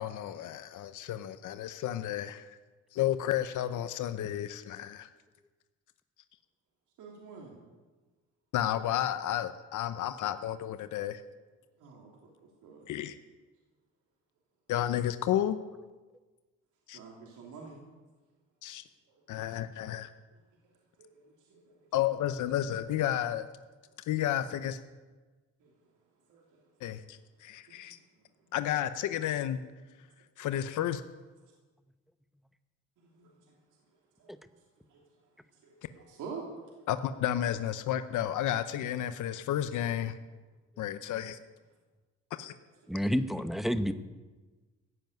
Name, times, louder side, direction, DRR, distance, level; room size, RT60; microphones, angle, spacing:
voice 1, 0.0-2.5 2.9-5.1 8.5-11.2 12.9-13.2 14.7-15.6 16.9-17.0 18.6-18.8 19.3-20.1 21.9-23.5 24.1-24.8 26.8-28.0 28.5-29.6 30.4-31.0 36.9-40.2 40.8-41.4 42.3-42.5, left 11 dB, 80° left, 11 dB, 0.8 m, -32 dB
voice 2, 7.0-7.5 11.8-12.9 16.9-17.8 19.3-19.4 21.0-21.7 25.6-25.7 26.3-26.4 27.7-27.8 33.1-33.6 34.2-34.3 34.9-35.0 35.6-36.4, right 5 dB, 85° right, -1 dB, 3.0 m, -47 dB
voice 3, 42.9-43.9, equal, ahead, 10 dB, 0.9 m, -29 dB
15.5 x 7.8 x 9.3 m, 1.3 s
cardioid pair, 90°, 30 cm